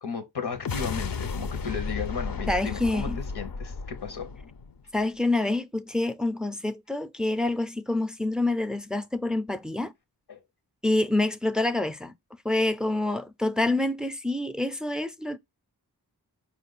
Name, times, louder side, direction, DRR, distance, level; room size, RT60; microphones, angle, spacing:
voice 1, 0.0-4.3 10.3-10.4, left 6 dB, 85° left, 0.9 m, -35 dB
sound 1, 0.5-5.0, left 4 dB, 65° left, 0.6 m, -33 dB
voice 2, 2.5-3.2 4.9-9.9 10.8-12.1 12.4-15.4, left 2 dB, ahead, 0.4 m, -27 dB
4.9 x 2.5 x 3.9 m
wide cardioid pair, 55°, 38 cm